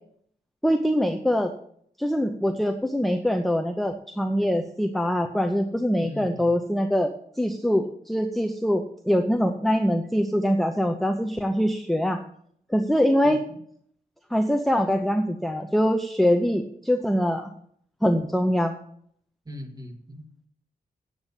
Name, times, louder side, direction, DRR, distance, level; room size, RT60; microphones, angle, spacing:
voice 1, 0.6-1.5 2.0-7.1 7.4-12.2 12.7-13.4 14.3-17.5 18.0-18.8, equal, ahead, 5 dB, 0.6 m, -23 dB
voice 2, 6.0-6.5 13.2-13.6 19.5-20.5, left 1 dB, 25° right, 3 dB, 1.9 m, -40 dB
9.0 x 7.8 x 7.1 m, 0.64 s
wide cardioid pair, 155°, 16 cm